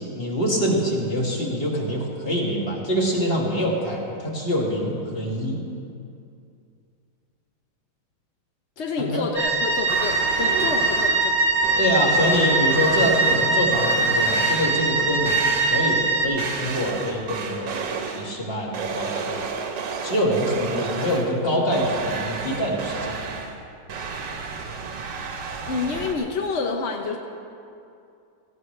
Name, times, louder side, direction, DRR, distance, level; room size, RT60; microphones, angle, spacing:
voice 1, 0.0-5.6 9.0-9.2 11.8-17.7 18.1-19.4 20.0-23.2, equal, 30° left, -3 dB, 2.1 m, -25 dB
voice 2, 8.8-11.4 11.9-12.1 25.7-27.2, left 4 dB, 60° left, 2 dB, 0.7 m, -28 dB
sound 1, 9.4-16.3, right 3 dB, 40° right, 1.4 m, -22 dB
sound 2, 9.9-11.3 11.6-15.0 15.3-16.0 16.4-18.4 18.7-21.5 21.7-26.2, right 5 dB, 70° right, 1.7 m, -32 dB
17.5 x 16.0 x 3.3 m, 2.5 s
omnidirectional pair, 2.2 m